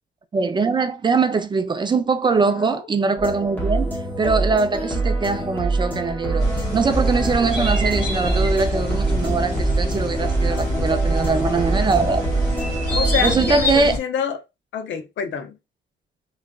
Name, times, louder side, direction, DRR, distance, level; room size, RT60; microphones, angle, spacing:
voice 1, 0.3-3.9 4.2-12.2 13.2-14.0, right 4 dB, 25° right, 0.4 m, -22 dB
voice 2, 2.4-2.8 12.9-14.4 14.7-15.6, left 7 dB, 75° left, 0.6 m, -27 dB
sound 1, 3.2-13.6, right 2 dB, 10° left, 0.9 m, -25 dB
sound 2, 6.4-14.0, equal, 40° left, 1.9 m, -25 dB
3.9 x 2.2 x 2.3 m
wide cardioid pair, 155°, 19 cm